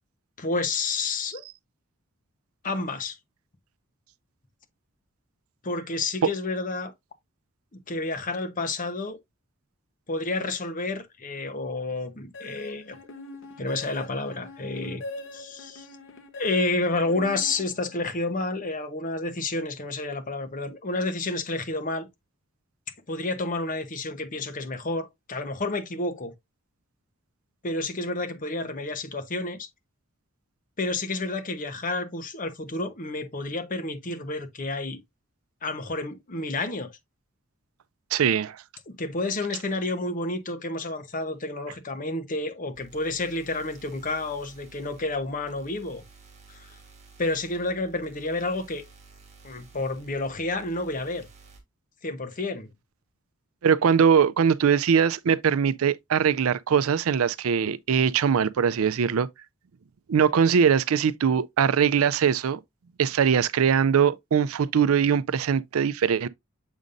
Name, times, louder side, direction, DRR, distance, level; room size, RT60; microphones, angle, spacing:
voice 1, 0.4-1.4 2.6-3.2 5.6-6.9 7.7-9.2 10.1-13.0 13.6-15.0 15.3-15.9 16.4-22.1 23.1-26.3 27.6-29.7 30.8-35.0 35.6-36.9 38.9-46.0 46.5-46.7 47.2-48.8 49.4-51.3 52.0-52.7, left 2 dB, 40° left, 1.0 m, -30 dB
sound 1, 12.3-18.2, left 2 dB, 65° left, 1.0 m, -42 dB
voice 2, 38.1-38.6 53.6-59.3 60.1-62.6 63.0-66.3, right 7 dB, 85° right, 0.4 m, -21 dB
sound 2, 42.7-51.6, right 4 dB, 35° right, 2.5 m, -52 dB
7.3 x 5.2 x 2.6 m
head